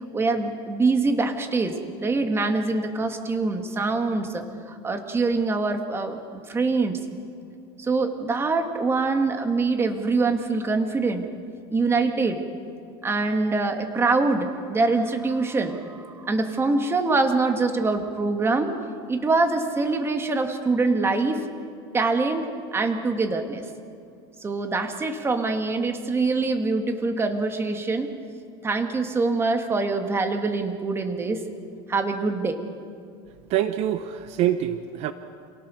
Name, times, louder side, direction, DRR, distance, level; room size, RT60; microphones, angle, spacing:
voice 1, 0.1-4.4 4.7-6.2 6.5-7.0 7.8-11.3 11.7-12.4 13.0-18.8 19.1-21.4 21.9-23.6 24.4-28.1 28.6-31.4 31.9-32.6, right 3 dB, 20° right, 6 dB, 2.0 m, -24 dB
voice 2, 33.5-35.1, right 11 dB, 55° right, 10 dB, 1.0 m, -25 dB
27.5 x 18.0 x 6.6 m, 2.4 s
supercardioid pair, 130°, 13 cm